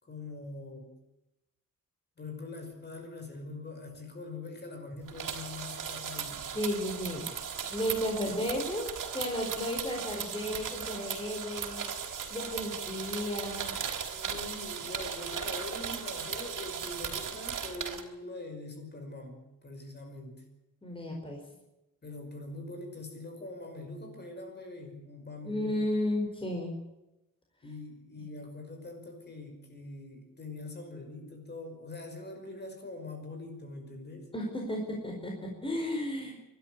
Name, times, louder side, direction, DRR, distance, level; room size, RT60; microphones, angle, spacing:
voice 1, 0.0-0.9 2.2-6.5 8.2-8.4 12.9-13.0 14.1-20.4 22.0-25.8 27.6-34.3, left 2 dB, 30° left, 4 dB, 5.6 m, -43 dB
sound 1, 5.1-18.0, right 7 dB, 75° right, 3.7 m, -37 dB
voice 2, 6.5-7.3 7.7-11.8 12.3-13.7 20.8-21.4 25.4-26.7 34.3-36.4, left 1 dB, 15° left, 0 dB, 4.7 m, -33 dB
24.5 x 13.0 x 9.7 m, 0.94 s
wide cardioid pair, 160°, 32 cm